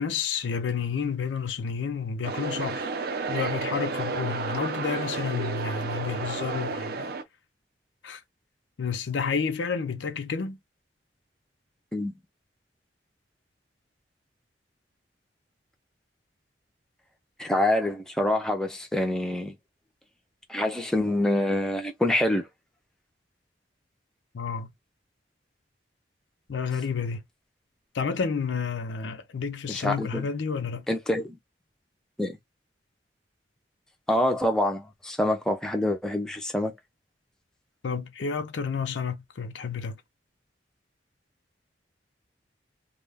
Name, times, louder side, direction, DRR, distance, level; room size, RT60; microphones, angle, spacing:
voice 1, 0.0-2.8 3.3-7.1 8.0-8.2 8.8-10.6 24.3-24.7 26.5-27.2 27.9-30.9 37.8-40.0, left 5 dB, 90° left, 0.5 m, -30 dB
sound 1, 2.2-7.2, right 4 dB, 55° right, 0.4 m, -32 dB
voice 2, 17.4-19.6 20.5-22.5 29.7-30.3 30.9-31.4 32.2-32.4 34.1-36.7, left 1 dB, 5° left, 0.4 m, -26 dB
2.3 x 2.1 x 3.3 m
head